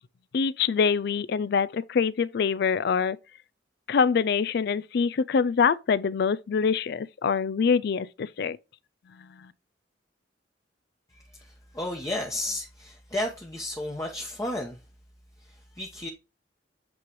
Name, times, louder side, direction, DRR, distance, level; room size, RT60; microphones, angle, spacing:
voice 1, 0.3-3.2 3.9-8.6, left 6 dB, 60° left, 0.4 m, -25 dB
voice 2, 11.1-14.8 15.4-16.1, left 1 dB, 15° left, 0.9 m, -33 dB
8.5 x 3.2 x 4.6 m
head